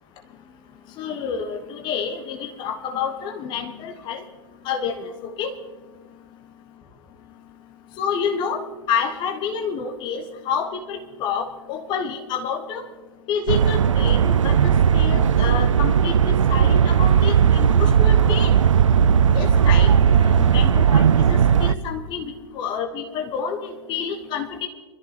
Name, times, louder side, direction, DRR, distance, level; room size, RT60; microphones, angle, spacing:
voice 1, 1.0-4.2 4.6-5.1 5.4-5.5 8.0-12.8 13.3-18.6 19.3-19.9 20.2-24.7, left 6 dB, 30° left, 4 dB, 1.2 m, -28 dB
sound 1, 13.5-21.7, right 8 dB, 70° right, 0.5 m, -17 dB
25.0 x 13.5 x 3.0 m, 1.4 s
figure-of-eight pair, 110°, 16 cm